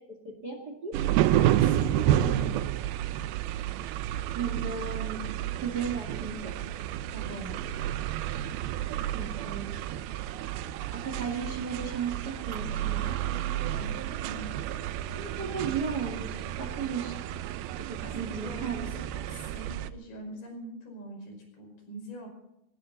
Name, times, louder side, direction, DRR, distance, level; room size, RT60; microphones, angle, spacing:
sound 1, 0.9-19.9, right 12 dB, 80° right, 2.6 m, -30 dB
voice 1, 1.3-2.5 7.1-7.6 13.0-14.6 18.0-22.3, equal, 80° left, 2 dB, 7.3 m, -43 dB
voice 2, 4.3-5.2 5.6-6.5 6.9-7.0 9.1-9.7 10.9-12.1 12.5-13.1 15.1-17.2 17.8-18.9, right 6 dB, 30° right, 4 dB, 2.2 m, -35 dB
19.0 x 18.5 x 4.1 m, 0.83 s
omnidirectional pair, 4.4 m